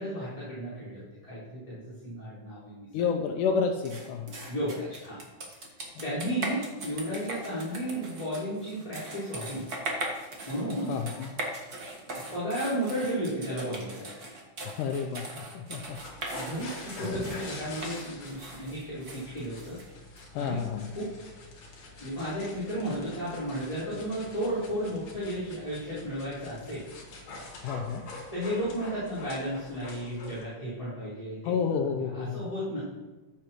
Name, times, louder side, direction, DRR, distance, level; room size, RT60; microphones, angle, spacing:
voice 1, 0.0-2.9 4.5-5.2 6.0-9.7 10.5-11.0 12.1-14.3 16.3-19.8 20.4-20.6 20.9-21.1 22.0-26.9 28.3-31.5 31.9-32.8, equal, 10° left, -12 dB, 4.0 m, -33 dB
voice 2, 2.9-4.3 10.9-11.3 14.7-16.0 20.3-20.9 27.6-28.0 31.4-32.5, left 6 dB, 90° left, 3 dB, 2.2 m, -30 dB
sound 1, 3.9-20.2, right 2 dB, 40° right, 1.5 m, -40 dB
sound 2, 15.8-30.4, left 2 dB, 60° left, 3.1 m, -45 dB
14.5 x 8.4 x 3.1 m, 1.1 s
omnidirectional pair, 3.7 m